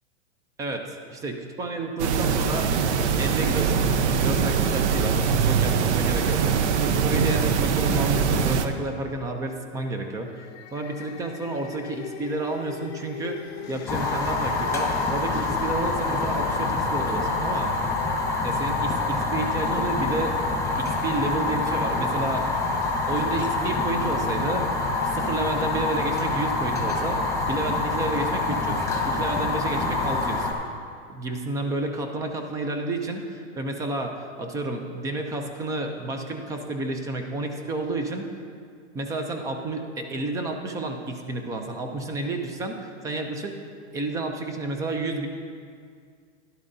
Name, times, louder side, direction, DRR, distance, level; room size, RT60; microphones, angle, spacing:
voice 1, 0.6-2.7 3.2-6.4 6.8-10.3 10.7-17.7 18.4-22.5 23.1-24.7 25.0-30.5 31.1-38.3 38.9-43.5 43.9-45.3, right 2 dB, 10° right, 5 dB, 0.3 m, -30 dB
sound 1, 2.0-8.7, right 6 dB, 65° right, 0.7 m, -23 dB
sound 2, 10.1-19.4, left 9 dB, 40° left, 0.6 m, -40 dB
Fire, 13.9-30.5, left 3 dB, 10° left, 1.1 m, -26 dB
12.0 x 11.0 x 2.6 m, 2.2 s
hypercardioid pair, 130°, 38 cm